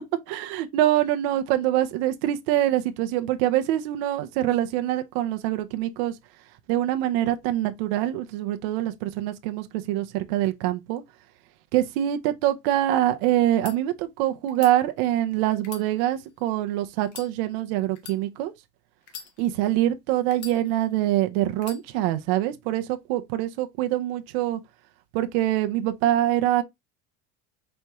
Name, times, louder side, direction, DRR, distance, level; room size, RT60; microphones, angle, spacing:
voice 1, 0.3-6.2 6.7-11.0 11.7-18.5 19.4-24.6 25.1-26.6, right 13 dB, 60° right, 0.6 m, -24 dB
sound 1, 13.5-13.8 14.5-14.7 15.6-16.5 17.0-17.3 17.9-18.2 19.0-19.7 20.3-21.0 21.6-21.8, left 7 dB, 35° left, 0.9 m, -42 dB
4.3 x 3.0 x 3.4 m
cardioid pair, 180°, 33 cm